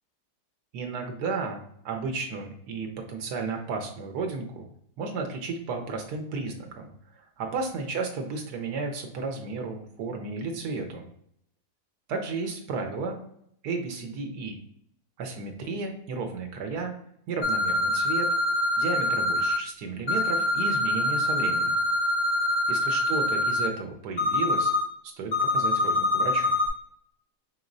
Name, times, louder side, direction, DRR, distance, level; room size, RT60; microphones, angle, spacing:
voice 1, 0.7-4.6 5.0-11.1 12.1-13.2 13.6-14.6 15.2-16.9 17.3-18.3 18.8-21.8 22.7-24.7 25.0-26.6, right 4 dB, 80° right, 3 dB, 1.2 m, -33 dB
sound 1, 17.4-19.6 20.1-23.7 24.2-24.8 25.3-26.7, left 1 dB, 85° left, 0.3 m, -25 dB
4.9 x 3.0 x 2.5 m, 0.71 s
omnidirectional pair, 1.7 m